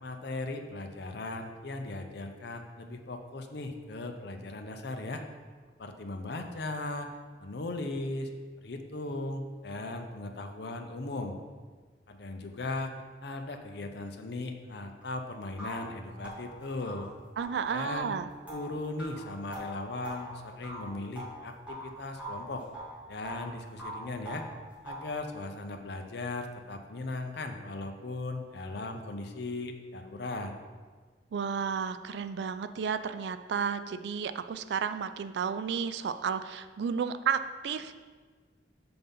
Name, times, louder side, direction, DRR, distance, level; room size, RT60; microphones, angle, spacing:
voice 1, 0.0-5.2 5.8-7.1 7.4-8.3 8.6-11.4 12.1-17.1 17.7-18.1 18.5-22.6 23.1-24.4 24.8-30.5, left 2 dB, 60° left, 5 dB, 0.7 m, -38 dB
sound 1, 15.0-15.1 15.6-21.9 22.2-23.5 23.8-25.2, equal, 5° right, 1.7 m, -43 dB
voice 2, 17.4-18.3 31.3-37.9, right 6 dB, 65° right, 11 dB, 0.3 m, -32 dB
6.8 x 3.9 x 5.4 m, 1.5 s
head